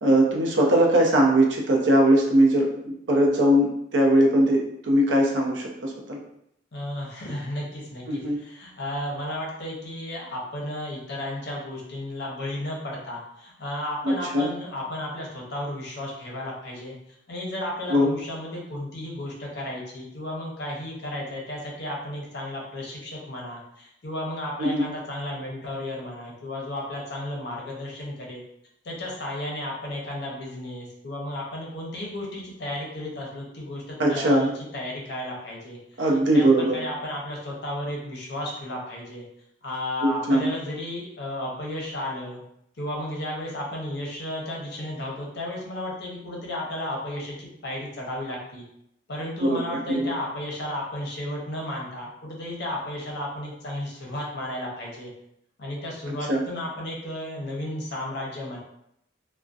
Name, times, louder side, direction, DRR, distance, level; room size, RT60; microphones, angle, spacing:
voice 1, 0.0-6.2 8.1-8.4 14.0-14.5 17.9-18.1 24.6-24.8 34.0-34.5 36.0-36.8 40.0-40.5 49.4-49.6 49.9-50.1 56.3-56.4, right 1 dB, 70° right, 0 dB, 0.5 m, -20 dB
voice 2, 6.7-17.0 17.3-28.4 28.8-39.2 39.6-42.4 42.8-48.6 49.1-55.1 55.6-58.6, left 1 dB, 60° left, -2 dB, 0.6 m, -33 dB
2.6 x 2.1 x 2.3 m, 0.77 s
head